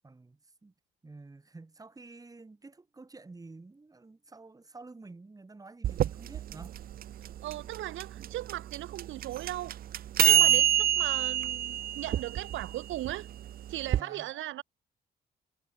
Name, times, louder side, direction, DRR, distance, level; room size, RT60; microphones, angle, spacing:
voice 1, 0.0-0.7 1.0-6.8 10.3-10.6 13.9-14.3, right 3 dB, 20° right, 1.2 m, -49 dB
sound 1, 5.8-14.0, right 11 dB, 50° right, 0.4 m, -27 dB
voice 2, 7.4-9.8 10.2-13.3 13.7-14.6, right 15 dB, 75° right, 1.0 m, -37 dB
supercardioid pair, 60°, 20 cm